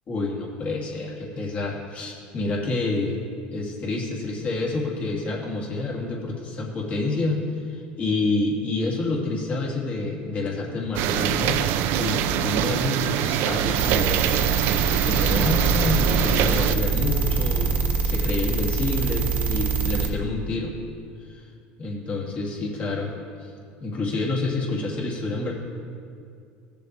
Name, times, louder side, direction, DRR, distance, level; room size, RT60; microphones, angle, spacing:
voice 1, 0.1-3.2 3.5-7.4 7.7-11.6 11.9-17.8 18.0-20.8 21.3-21.5 21.8-23.1 23.4-23.5 23.8-25.5, left 2 dB, 35° left, -2 dB, 2.2 m, -28 dB
sound 1, 10.9-16.7, right 10 dB, 65° right, 0.5 m, -24 dB
sound 2, 13.8-20.1, right 5 dB, 40° right, 1.3 m, -24 dB
16.5 x 6.9 x 3.1 m, 2.4 s
supercardioid pair, 115°, 4 cm